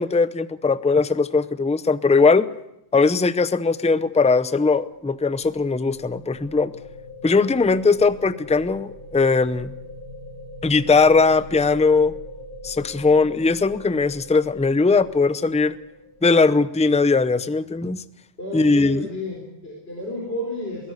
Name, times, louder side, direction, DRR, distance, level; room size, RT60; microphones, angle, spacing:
voice 1, 0.0-2.5 2.9-6.7 7.2-9.7 10.6-12.1 12.6-15.7 16.2-18.0 18.5-19.0, left 4 dB, 10° left, 15 dB, 0.4 m, -19 dB
sound 1, 4.9-16.7, equal, 65° right, 4.6 m, -42 dB
voice 2, 18.4-20.9, left 1 dB, 50° left, -1 dB, 4.7 m, -31 dB
23.0 x 17.0 x 8.2 m, 0.86 s
omnidirectional pair, 1.3 m